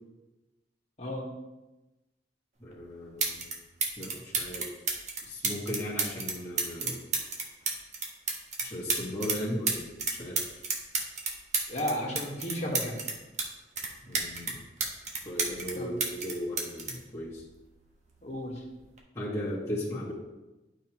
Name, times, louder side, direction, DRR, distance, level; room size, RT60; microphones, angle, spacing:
voice 1, 2.6-3.5 4.0-4.8 5.2-7.0 8.6-10.7 14.0-14.6 15.2-17.5 19.1-20.1, left 1 dB, 15° left, -9 dB, 1.9 m, -36 dB
sound 1, 2.7-2.8 3.2-3.5 3.8-9.4 9.7-13.5 13.8-15.7 16.0-17.8 18.8-19.0, right 4 dB, 40° right, 1.2 m, -31 dB
voice 2, 11.7-12.9 15.7-15.9 18.2-18.6, equal, 40° left, -1 dB, 1.6 m, -33 dB
11.5 x 5.0 x 3.1 m, 1.1 s
head